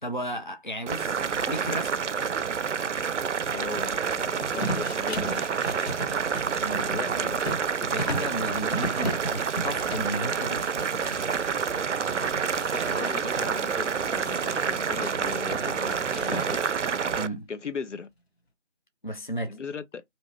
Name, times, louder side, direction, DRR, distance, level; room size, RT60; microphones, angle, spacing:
voice 1, 0.0-1.2 1.5-2.0 6.6-7.2 7.9-10.7 17.1-17.5 19.0-19.6, right 1 dB, 45° left, 0.4 m, -34 dB
Boiling, 0.9-17.3, right 6 dB, 85° right, 0.5 m, -28 dB
voice 2, 3.5-5.6 6.8-7.4 12.7-17.1 17.5-18.1 19.5-20.0, left 5 dB, 85° left, 0.6 m, -38 dB
sound 1, 4.4-11.5 11.9-13.5 14.3-16.8, right 1 dB, 60° left, 1.0 m, -36 dB
2.7 x 2.2 x 2.9 m
figure-of-eight pair, 175°, 35 cm